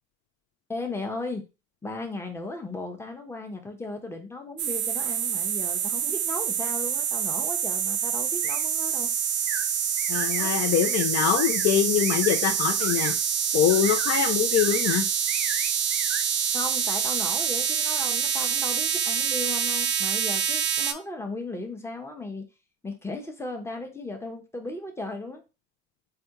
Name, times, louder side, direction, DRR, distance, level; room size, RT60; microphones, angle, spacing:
voice 1, 0.7-1.4 1.8-9.1 10.4-10.6 16.5-22.5 22.8-25.4, left 2 dB, 5° left, 4 dB, 0.8 m, -36 dB
sound 1, 4.6-20.9, right 8 dB, 35° right, 0.4 m, -26 dB
sound 2, 8.4-8.6 9.5-9.7 10.0-10.5 10.8-11.1 11.4-11.7 12.0-12.4 12.8-13.1 13.7-14.3 14.6-15.0 15.3-16.2, right 8 dB, 80° right, 0.5 m, -35 dB
voice 2, 10.1-13.1 13.5-15.0, left 10 dB, 45° left, 5 dB, 0.5 m, -24 dB
3.3 x 2.3 x 2.8 m, 0.29 s
hypercardioid pair, 65°, 35 cm